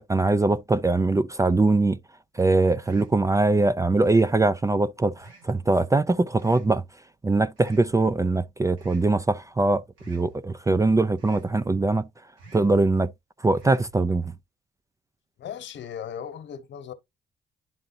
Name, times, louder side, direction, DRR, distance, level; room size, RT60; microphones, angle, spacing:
voice 1, 0.0-2.0 2.4-6.8 7.2-12.1 12.5-13.1 13.4-14.3, right 2 dB, 15° right, 0.4 m, -22 dB
sound 1, 2.8-3.2 4.0-4.4 5.2-5.6 6.4-6.8 7.6-7.9 8.8-9.1 10.0-10.3 11.2-11.5 12.4-12.7 13.6-13.9, right 3 dB, 75° right, 4.0 m, -47 dB
voice 2, 15.4-16.9, left 8 dB, 65° left, 1.2 m, -37 dB
11.0 x 3.8 x 2.6 m
cardioid pair, 90°, 20 cm